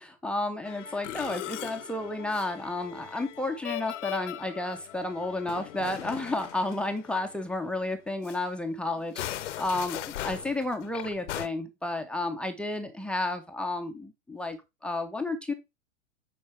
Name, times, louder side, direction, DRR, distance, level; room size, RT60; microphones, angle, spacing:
voice 1, 0.2-14.6 14.8-15.5, left 2 dB, 5° left, 4 dB, 0.5 m, -32 dB
Musical instrument, 0.6-7.5 7.8-8.0 8.2-8.4 9.0-11.5, left 13 dB, 60° left, 0.7 m, -39 dB
8.7 x 4.6 x 3.2 m, 0.23 s
hypercardioid pair, 115°, 40 cm